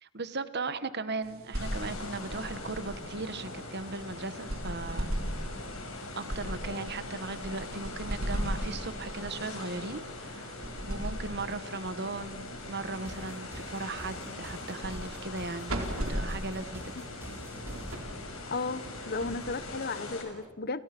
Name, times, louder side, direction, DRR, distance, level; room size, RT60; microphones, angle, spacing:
voice 1, 0.0-5.1 6.2-10.6 10.8-15.8 16.1-16.9, right 3 dB, 50° right, 13 dB, 1.4 m, -37 dB
sound 1, 1.2-20.1, equal, 70° right, 4.3 m, -39 dB
sound 2, 1.5-20.2, left 2 dB, 75° left, 5.4 m, -42 dB
sound 3, 12.1-12.2 12.6-18.0, right 1 dB, 10° right, 4.5 m, -48 dB
voice 2, 18.5-20.8, left 3 dB, 45° left, 16 dB, 1.0 m, -34 dB
30.0 x 29.0 x 6.1 m, 1.4 s
head